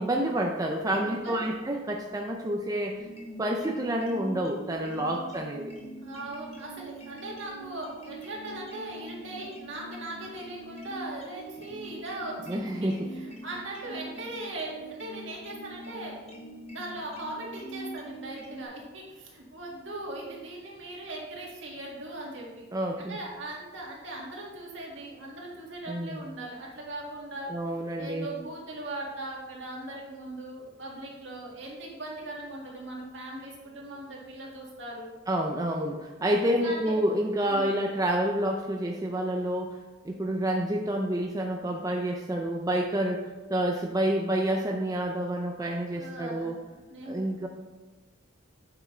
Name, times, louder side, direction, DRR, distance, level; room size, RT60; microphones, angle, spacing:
voice 1, 0.0-3.0 3.4-5.7 12.5-13.1 22.7-23.2 25.9-26.2 27.5-28.3 35.3-39.8 40.0-46.6 47.1-47.5, right 1 dB, 15° right, 1 dB, 0.4 m, -28 dB
voice 2, 1.0-1.5 6.0-16.3 16.6-22.7 23.0-27.5 28.0-35.1 36.6-37.0 37.5-37.7 45.8-46.5 46.9-47.5, right 1 dB, 60° right, -3 dB, 1.9 m, -39 dB
sound 1, 3.0-18.7, right 1 dB, 30° left, 1.1 m, -44 dB
8.5 x 6.0 x 3.3 m, 1.2 s
head